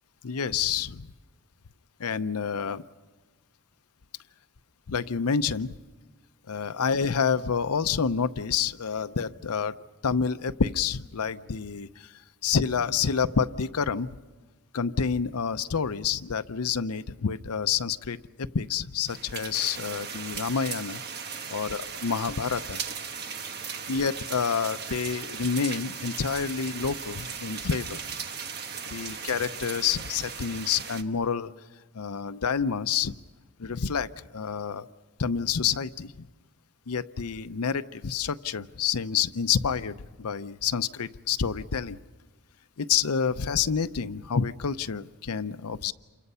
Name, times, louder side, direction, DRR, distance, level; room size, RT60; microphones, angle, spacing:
voice 1, 0.2-1.1 2.0-2.8 4.9-5.8 6.5-9.7 10.0-12.1 12.4-14.2 14.7-18.2 18.5-21.0 21.5-22.8 23.9-28.0 28.9-31.5 31.9-33.1 33.6-34.9 35.2-36.3 36.9-42.0 42.8-45.9, left 6 dB, 90° left, 13 dB, 0.7 m, -28 dB
sound 1, 19.1-31.0, right 6 dB, 50° right, 1.2 m, -37 dB
28.5 x 24.5 x 5.6 m, 1.3 s
head